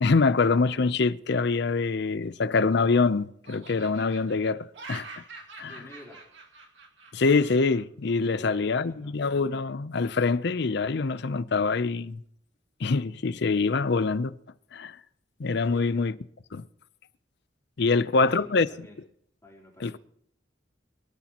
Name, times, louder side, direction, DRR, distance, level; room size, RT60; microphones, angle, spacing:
voice 1, 0.0-5.1 5.6-5.7 7.1-12.2 12.8-14.4 14.7-15.0 15.4-16.2 16.5-16.6 17.8-18.7 19.8-20.0, left 4 dB, 65° left, 0.6 m, -25 dB
Laughter, 2.2-3.1 3.4-7.8, right 3 dB, 70° right, 2.2 m, -46 dB
voice 2, 5.6-6.2 8.3-9.2 15.7-16.0 17.8-19.0 19.4-20.0, left 1 dB, 15° left, 3.7 m, -49 dB
23.5 x 13.0 x 3.0 m
head